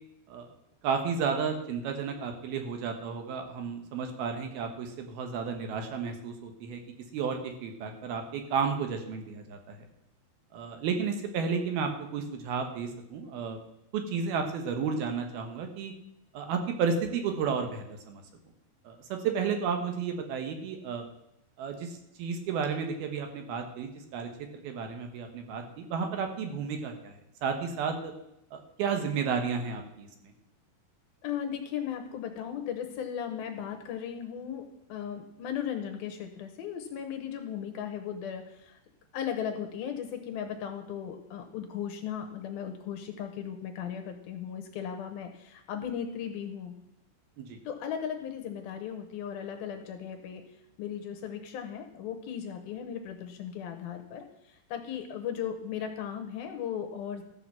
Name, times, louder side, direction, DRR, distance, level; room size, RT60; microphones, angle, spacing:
voice 1, 0.8-6.8 7.1-9.8 10.5-13.6 13.9-15.9 16.3-18.2 18.8-21.1 21.6-24.3 24.6-27.1 27.4-28.1 28.5-30.3 47.4-47.6, right 6 dB, 70° right, 5 dB, 2.9 m, -32 dB
voice 2, 31.2-38.8 39.1-46.7 47.7-50.4 50.8-57.2, left 8 dB, 70° left, 5 dB, 2.6 m, -37 dB
13.5 x 5.8 x 7.3 m, 0.81 s
omnidirectional pair, 4.8 m